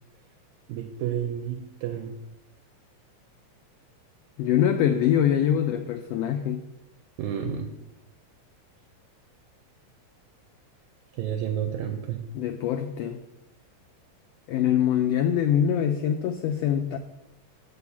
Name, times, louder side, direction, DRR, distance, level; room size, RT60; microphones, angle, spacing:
voice 1, 0.7-2.2 7.2-7.7 11.2-12.2, right 9 dB, 80° right, 5 dB, 2.0 m, -30 dB
voice 2, 4.4-6.6 12.3-13.2 14.5-17.0, left 9 dB, 85° left, 5 dB, 1.4 m, -24 dB
7.0 x 4.7 x 7.0 m, 0.92 s
omnidirectional pair, 3.4 m